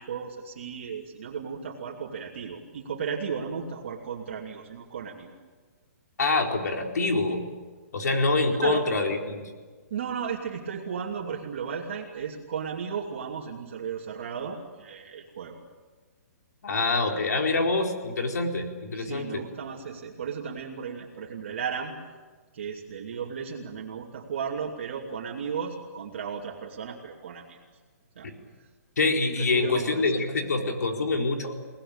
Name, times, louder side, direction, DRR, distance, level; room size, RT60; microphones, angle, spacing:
voice 1, 0.0-5.3 8.6-8.8 9.9-15.6 16.9-17.1 18.9-21.9 22.5-27.6 28.2-28.3 29.4-30.7, right 6 dB, 45° right, -1 dB, 2.8 m, -35 dB
voice 2, 6.2-7.4 7.9-9.4 16.6-19.4 29.0-31.5, left 3 dB, 85° left, 2 dB, 4.3 m, -25 dB
30.0 x 19.0 x 8.9 m, 1.4 s
hypercardioid pair, 180°, 9 cm